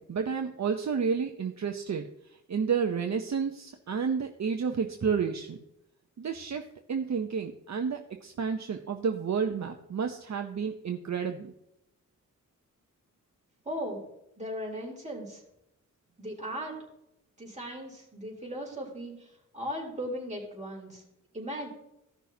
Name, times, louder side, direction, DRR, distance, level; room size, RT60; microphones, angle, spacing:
voice 1, 0.0-2.1 2.5-5.6 6.2-6.6 6.9-11.5, right 6 dB, 55° right, 5 dB, 0.7 m, -30 dB
voice 2, 13.7-14.0 14.4-15.4 16.2-16.8 17.4-21.0 21.3-21.7, equal, 20° right, -3 dB, 3.7 m, -37 dB
15.5 x 6.1 x 2.8 m, 0.83 s
wide cardioid pair, 100°, 32 cm